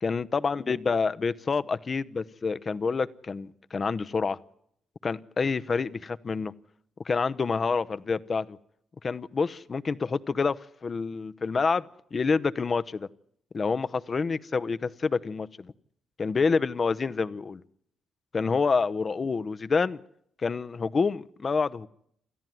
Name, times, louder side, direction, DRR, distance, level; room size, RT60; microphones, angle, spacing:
voice 1, 0.0-4.4 5.0-6.5 7.0-8.6 9.0-13.1 13.5-15.7 16.2-17.6 18.3-20.0 20.4-21.9, left 4 dB, 40° left, 14 dB, 0.9 m, -28 dB
28.0 x 13.5 x 9.2 m, 0.72 s
supercardioid pair, 65°, 0 cm